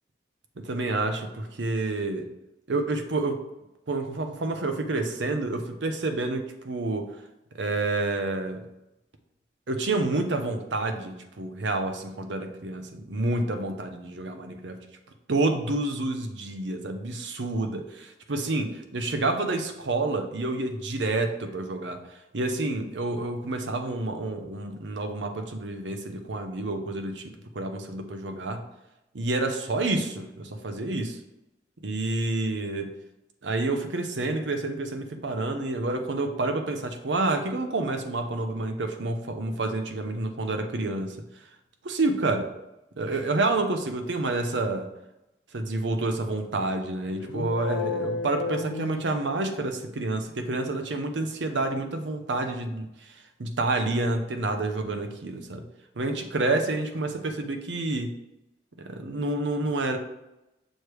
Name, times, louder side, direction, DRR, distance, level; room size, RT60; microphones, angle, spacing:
voice 1, 0.6-2.3 2.7-3.4 3.9-7.1 7.6-8.6 9.7-14.8 15.3-22.0 22.3-28.6 29.1-31.2 31.8-32.9 33.4-41.2 41.8-42.5 43.0-44.9 45.5-55.6 56.0-58.1 58.8-60.0, right 2 dB, 85° right, 6 dB, 0.7 m, -29 dB
sound 1, 47.2-49.8, left 4 dB, 85° left, 0.4 m, -32 dB
6.4 x 3.2 x 4.7 m, 0.92 s
head